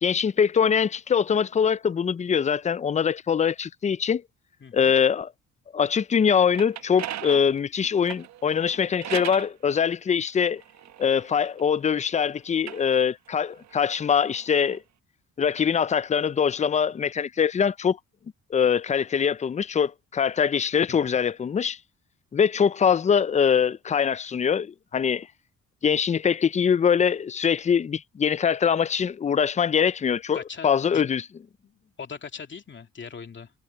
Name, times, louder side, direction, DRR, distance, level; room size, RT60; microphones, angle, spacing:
voice 1, 0.0-4.2 4.7-5.3 5.7-10.6 11.0-14.8 15.4-18.0 18.5-21.8 22.3-25.3 25.8-31.2, left 7 dB, 25° left, 0.4 m, -23 dB
voice 2, 4.6-4.9 20.9-21.2 30.3-31.0 31.6-33.5, left 6 dB, 40° left, 2.5 m, -41 dB
sound 1, 6.3-9.5 10.3-12.0 12.5-14.8, right 11 dB, 65° right, 1.1 m, -39 dB
cardioid pair, 90°, 30 cm